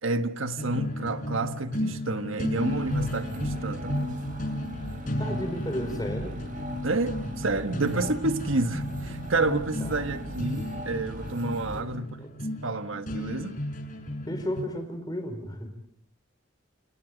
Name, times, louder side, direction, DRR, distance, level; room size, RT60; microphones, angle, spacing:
voice 1, 0.0-4.2 6.8-12.2 12.6-13.6, right 2 dB, 90° right, 1.5 m, -29 dB
sound 1, 0.6-14.6, equal, 40° left, 6.1 m, -34 dB
sound 2, 2.6-11.8, left 1 dB, 40° right, 3.6 m, -38 dB
voice 2, 5.2-6.4 9.8-10.1 11.7-11.9 12.2-12.3 14.3-15.9, equal, 20° left, 4.7 m, -34 dB
30.0 x 28.5 x 5.2 m
head